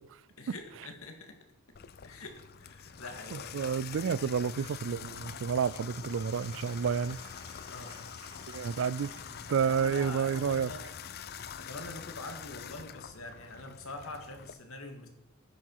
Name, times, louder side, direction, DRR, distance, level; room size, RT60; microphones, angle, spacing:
voice 1, 0.4-1.4 2.0-3.7 7.7-8.1 9.1-9.3 9.6-10.9 11.6-15.1, left 2 dB, 80° left, 2.1 m, -45 dB
Water tap faucet / Bathtub (filling or washing), 1.7-14.5, left 8 dB, 45° left, 0.5 m, -45 dB
voice 2, 3.3-7.2 8.5-9.1 9.5-10.7, right 6 dB, 60° right, 0.4 m, -30 dB
Applause, 5.8-10.8, right 3 dB, 75° right, 3.1 m, -57 dB
10.5 x 9.5 x 4.7 m
head